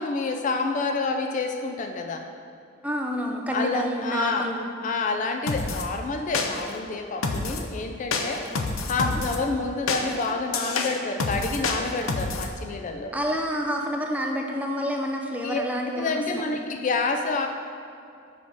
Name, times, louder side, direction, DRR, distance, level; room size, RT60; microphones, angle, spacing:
voice 1, 0.0-2.3 3.5-4.5 4.8-8.4 8.9-13.1 15.4-15.7 15.9-17.5, left 3 dB, 40° left, 5 dB, 0.3 m, -28 dB
voice 2, 2.8-4.7 9.0-9.2 13.1-16.5, equal, 5° right, 1 dB, 0.6 m, -28 dB
sound 1, 5.5-5.9 6.3-6.8 7.2-7.7 8.1-9.4 9.9-12.5, left 3 dB, 85° left, 0.6 m, -28 dB
7.3 x 5.1 x 4.5 m, 2.5 s
head